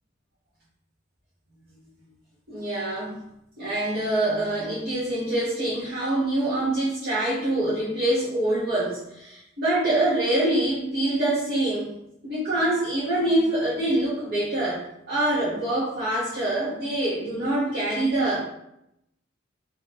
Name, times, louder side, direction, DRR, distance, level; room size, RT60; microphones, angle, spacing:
voice 1, 2.5-3.2 3.6-11.9 12.2-14.8 15.1-18.4, right 1 dB, 50° right, -11 dB, 1.4 m, -25 dB
4.8 x 3.1 x 3.1 m, 0.80 s
head